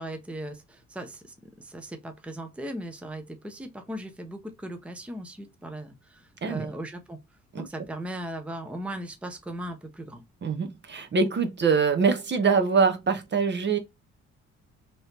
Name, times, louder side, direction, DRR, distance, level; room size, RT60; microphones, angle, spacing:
voice 1, 0.0-7.2 7.6-10.2, right 1 dB, 5° right, 0.7 m, -38 dB
voice 2, 10.4-13.8, right 5 dB, 35° right, 0.8 m, -24 dB
3.1 x 2.9 x 2.8 m
cardioid pair, 90°, 30 cm